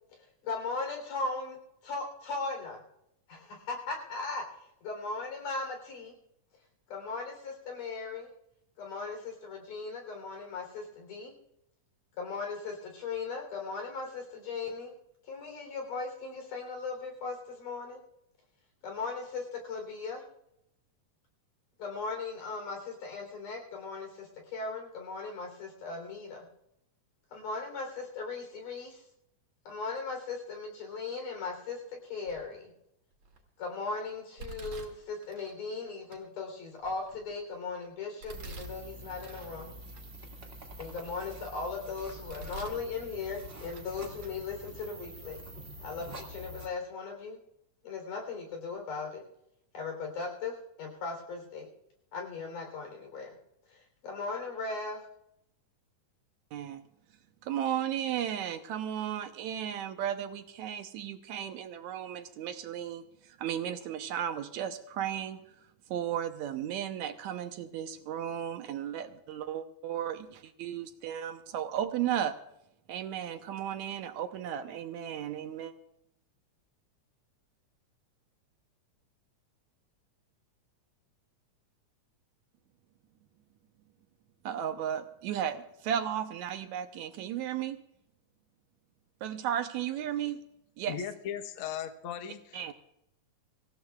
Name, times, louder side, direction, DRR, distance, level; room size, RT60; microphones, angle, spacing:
voice 1, 0.1-1.6 1.8-2.8 3.3-6.1 6.9-8.3 8.8-11.3 12.2-14.9 15.2-18.0 18.8-20.2 21.8-26.5 27.3-29.0 29.6-32.7 33.6-39.8 40.8-45.5 45.8-47.4 47.8-49.2 49.7-50.5 50.8-51.7 52.1-53.3 53.7-55.0, left 4 dB, 85° left, 3 dB, 5.1 m, -38 dB
Domestic sounds home sounds, 32.3-32.7 33.2-33.7 34.4-35.6 36.1-36.2 36.8-37.6 38.2-39.5 39.9-40.0 40.6-41.6 42.0-42.8 43.2-43.9 44.2-44.3 45.2-45.3 45.9-46.0 46.4-46.5, right 3 dB, 55° right, 3.3 m, -47 dB
sound 1, 38.3-46.7, right 1 dB, 25° right, 1.6 m, -46 dB
voice 2, 56.5-56.8 57.4-65.4 65.9-72.4 72.9-75.7 84.5-87.8 89.2-90.4 90.8-91.0 92.5-92.7, right 10 dB, 75° right, 8 dB, 1.9 m, -35 dB
voice 3, 90.9-92.7, left 8 dB, 60° left, 5 dB, 1.5 m, -38 dB
25.5 x 15.5 x 2.4 m, 0.82 s
omnidirectional pair, 3.6 m